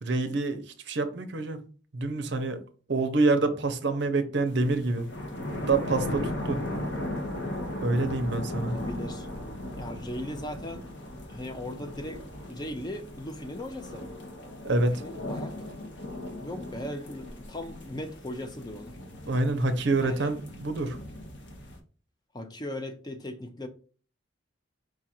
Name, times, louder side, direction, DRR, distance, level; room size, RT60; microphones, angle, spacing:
voice 1, 0.0-0.6 0.9-1.6 1.9-2.6 2.9-5.1 5.7-6.6 7.8-8.8 14.6-15.0 19.3-21.0, right 3 dB, 60° right, 0.6 m, -26 dB
sound 1, 4.5-21.8, left 1 dB, 60° left, 0.9 m, -37 dB
voice 2, 8.6-9.3 9.8-10.9 11.3-12.2 12.5-14.1 14.8-15.7 16.4-19.0 20.0-20.4 22.3-23.7, left 1 dB, 20° left, 0.4 m, -38 dB
4.8 x 2.5 x 4.3 m
head